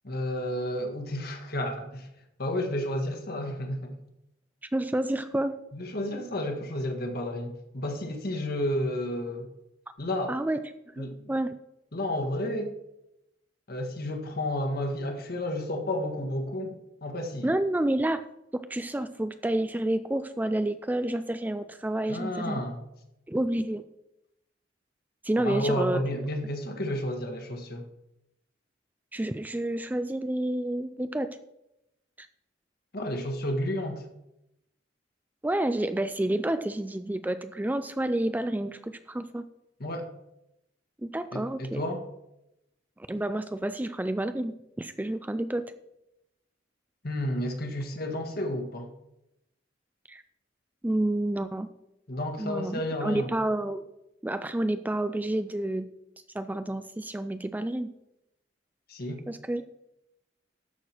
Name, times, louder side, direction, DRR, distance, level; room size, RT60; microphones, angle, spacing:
voice 1, 0.0-2.1 2.4-3.9 5.7-9.5 10.0-10.3 11.0-11.2 11.9-12.7 13.7-16.8 17.0-17.5 22.1-22.8 25.4-27.9 32.9-34.0 39.8-40.1 41.3-42.0 47.0-48.9 52.1-53.3 58.9-59.2, left 1 dB, 55° left, 4 dB, 1.6 m, -31 dB
voice 2, 4.7-5.5 10.3-10.6 11.0-11.5 17.4-18.2 18.5-22.6 23.3-23.8 25.2-26.0 29.1-31.4 32.2-32.3 35.4-39.4 41.0-41.8 43.1-45.7 50.1-50.2 50.8-51.7 52.4-53.8 54.2-55.9 56.3-57.9 59.3-59.7, right 1 dB, 10° right, 11 dB, 0.4 m, -29 dB
13.0 x 4.8 x 6.0 m, 0.86 s
head